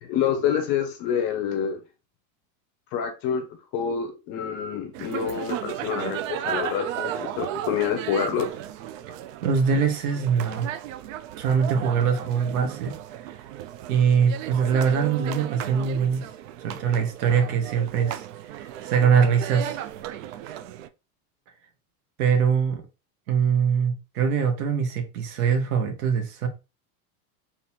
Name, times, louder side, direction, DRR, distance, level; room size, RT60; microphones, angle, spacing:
voice 1, 0.0-1.8 2.9-3.5 3.7-8.5, left 8 dB, 30° left, 0.6 m, -27 dB
sound 1, 4.9-20.9, right 11 dB, 60° right, 0.5 m, -35 dB
voice 2, 9.4-10.7 11.4-13.0 13.2-13.4 13.9-16.3 16.6-19.8 22.2-22.8 23.3-26.5, right 6 dB, 80° right, 1.4 m, -23 dB
3.9 x 2.9 x 4.2 m
supercardioid pair, 180°, 44 cm